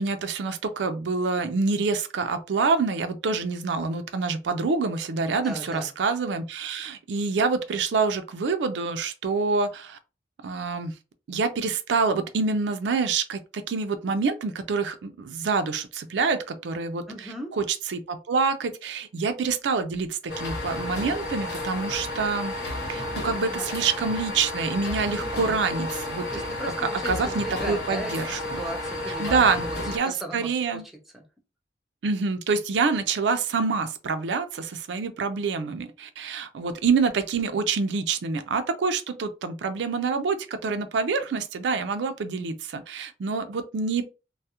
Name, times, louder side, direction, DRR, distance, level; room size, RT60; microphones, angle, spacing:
voice 1, 0.0-10.0 10.4-10.9 11.3-22.5 22.9-26.4 27.0-28.6 29.1-30.8 32.0-44.1, right 4 dB, 90° right, 0.4 m, -26 dB
voice 2, 5.4-5.9 17.1-17.5 23.4-23.6 26.3-28.1 28.4-29.5 29.9-30.8, right 1 dB, ahead, 0.4 m, -37 dB
sound 1, 20.3-30.0, left 1 dB, 70° left, 0.9 m, -32 dB
2.3 x 2.0 x 2.8 m
head